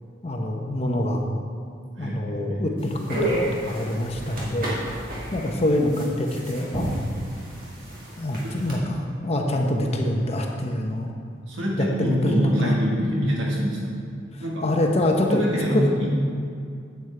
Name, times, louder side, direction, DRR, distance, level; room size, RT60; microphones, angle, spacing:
voice 1, 0.2-1.2 2.0-3.3 3.6-4.7 5.3-7.0 8.2-11.1 11.8-12.8 14.3-15.4 15.7-15.8, left 1 dB, 35° left, 2 dB, 0.7 m, -25 dB
voice 2, 2.0-2.7 8.4-8.5 11.5-14.0 14.4-14.6 15.3-16.1, equal, 80° right, -3 dB, 1.4 m, -25 dB
sound 1, 2.8-8.7, right 1 dB, 50° right, 1.8 m, -31 dB
8.4 x 8.0 x 3.3 m, 2.4 s
head